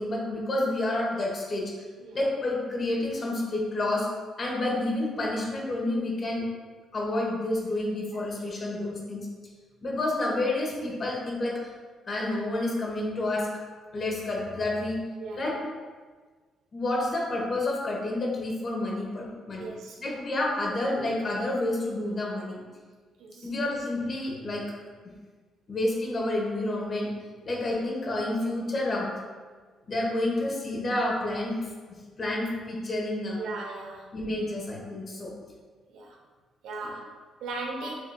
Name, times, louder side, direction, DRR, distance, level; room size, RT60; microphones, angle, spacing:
voice 1, 0.0-1.9 2.1-4.1 4.4-6.4 6.9-9.3 9.8-11.6 12.1-13.5 13.9-15.0 15.3-15.6 16.7-19.7 20.0-22.6 23.4-24.7 25.7-27.1 27.4-29.1 29.9-31.5 31.9-33.5 34.1-35.3 37.8-37.9, left 2 dB, 45° left, -2 dB, 1.3 m, -29 dB
voice 2, 19.6-20.0 23.2-23.5 33.4-34.1 35.9-36.2 36.6-37.9, right 3 dB, 85° right, -1 dB, 0.7 m, -38 dB
7.0 x 3.0 x 2.3 m, 1.4 s
cardioid pair, 90°, 0 cm